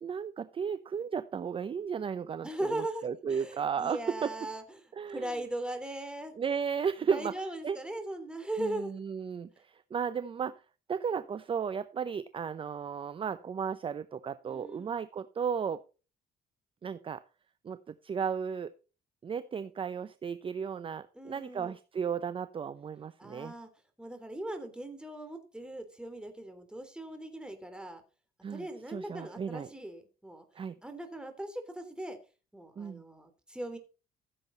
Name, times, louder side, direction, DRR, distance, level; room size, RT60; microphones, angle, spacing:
voice 1, 0.0-4.3 4.9-5.3 6.4-7.3 7.6-7.8 8.6-10.6 10.9-15.8 16.8-17.2 17.6-17.8 18.0-18.7 19.2-23.5 28.4-29.7 30.5-30.7 32.8-33.0, right 7 dB, 30° right, 13 dB, 0.7 m, -34 dB
voice 2, 2.4-4.6 5.1-6.3 7.0-8.9 14.5-14.9 21.1-21.7 23.2-23.7 24.0-28.0 28.5-30.4 30.8-32.2 32.5-33.8, right 1 dB, 5° right, 6 dB, 3.2 m, -39 dB
15.0 x 7.5 x 4.1 m, 0.34 s
cardioid pair, 110°, 17 cm